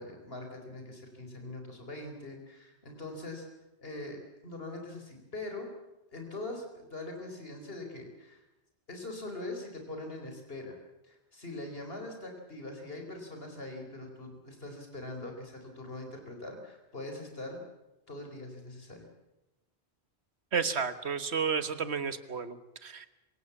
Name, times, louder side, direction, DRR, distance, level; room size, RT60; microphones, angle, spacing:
voice 1, 0.0-3.5 3.8-5.7 6.1-8.4 8.9-10.8 11.0-17.6 18.1-19.0, left 2 dB, 60° left, 4 dB, 4.7 m, -42 dB
voice 2, 20.5-23.1, right 6 dB, 70° right, 12 dB, 1.7 m, -32 dB
26.0 x 18.0 x 7.2 m, 0.97 s
omnidirectional pair, 1.1 m